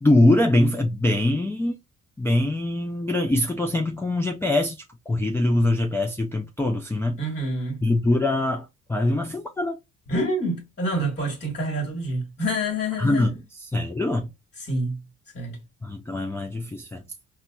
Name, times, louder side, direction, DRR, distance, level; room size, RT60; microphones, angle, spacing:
voice 1, 0.0-1.7 2.2-7.2 7.8-9.8 13.0-13.3 13.7-14.3 15.8-17.0, left 1 dB, 10° left, 0.3 m, -23 dB
voice 2, 7.2-7.8 10.1-13.3 14.6-15.0 15.3-15.6, equal, 35° left, 1.4 m, -27 dB
4.0 x 2.1 x 2.2 m
cardioid pair, 90°, 30 cm